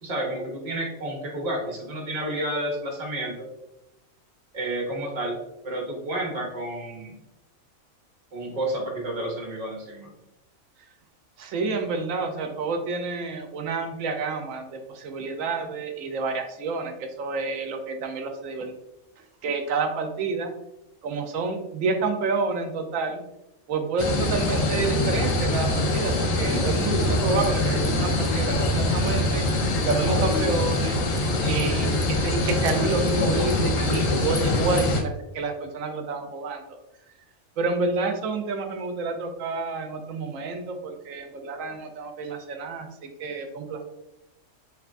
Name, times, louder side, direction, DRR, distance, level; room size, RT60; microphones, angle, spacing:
voice 1, 0.0-3.3 4.5-5.4 5.6-7.1 8.3-10.1, right 1 dB, 35° right, -1 dB, 0.8 m, -30 dB
voice 2, 11.4-18.7 19.4-20.5 21.0-23.2 23.7-29.4 29.8-31.0 31.4-36.8 37.6-43.8, right 4 dB, 85° right, 5 dB, 1.0 m, -29 dB
sound 1, 24.0-35.0, left 2 dB, 85° left, 1.1 m, -24 dB
3.4 x 3.1 x 2.5 m, 0.92 s
omnidirectional pair, 1.3 m